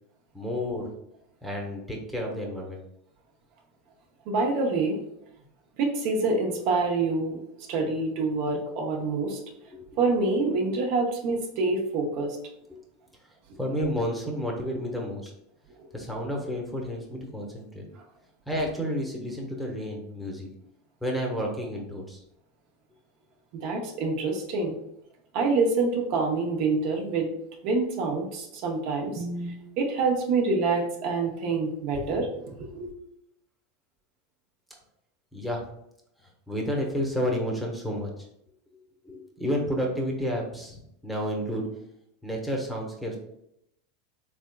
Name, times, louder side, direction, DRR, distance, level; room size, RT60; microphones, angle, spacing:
voice 1, 0.3-0.9 1.4-2.8 9.7-10.0 12.7-12.8 13.5-15.3 15.9-17.8 18.5-20.5 21.0-22.2 35.3-35.6 36.5-38.3 39.0-41.6 42.2-43.2, equal, ahead, 0 dB, 0.8 m, -31 dB
voice 2, 4.3-5.0 5.8-9.4 10.0-12.4 15.8-15.9 23.6-24.7 25.3-27.3 27.6-32.9, right 3 dB, 60° right, 2 dB, 0.7 m, -26 dB
3.5 x 3.4 x 2.3 m, 0.77 s
supercardioid pair, 115°, 0 cm